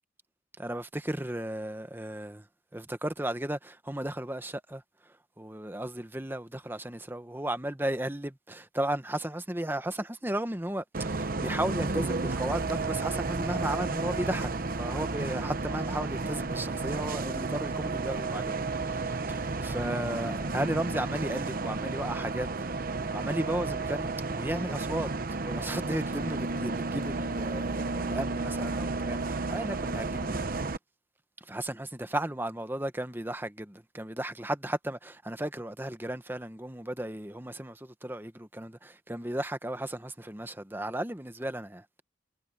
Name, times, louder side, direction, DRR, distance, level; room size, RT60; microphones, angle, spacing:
voice 1, 0.6-2.4 2.7-4.8 5.4-14.5 14.8-22.8 23.1-25.1 25.4-30.4 31.4-41.8, right 1 dB, 10° right, 1.1 m, -35 dB
Bus, 10.9-30.8, right 3 dB, 50° right, 0.9 m, -32 dB
head